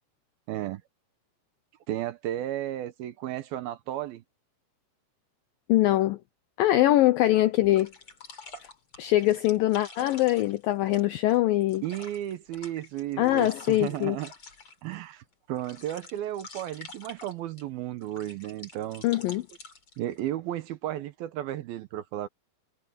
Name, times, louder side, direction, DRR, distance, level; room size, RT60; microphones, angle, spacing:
voice 1, 0.5-0.8 1.9-4.2 11.8-14.3 14.8-19.0 20.0-22.3, right 13 dB, 75° right, 2.5 m, -34 dB
voice 2, 5.7-6.2 6.6-7.9 9.0-11.8 13.2-14.2 19.0-19.4, left 15 dB, 85° left, 2.0 m, -23 dB
sound 1, 6.9-7.0 7.6-14.9 15.3-17.6 18.0-20.2, left 3 dB, 30° left, 5.2 m, -47 dB
omnidirectional pair, 4.9 m